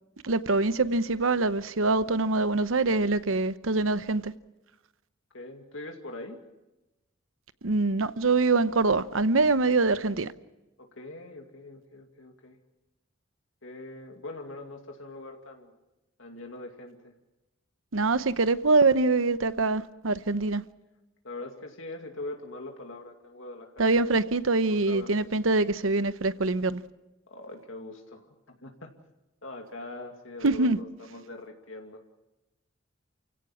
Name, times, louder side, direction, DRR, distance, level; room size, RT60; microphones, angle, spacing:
voice 1, 0.2-4.3 7.6-10.3 17.9-20.6 23.8-26.8 30.4-30.8, right 3 dB, 90° right, 0.9 m, -24 dB
voice 2, 5.3-6.4 10.8-12.6 13.6-15.7 16.2-17.1 21.2-24.2 24.7-25.2 27.3-28.9 29.4-32.0, left 2 dB, 80° left, 2.5 m, -42 dB
29.0 x 16.5 x 7.3 m
head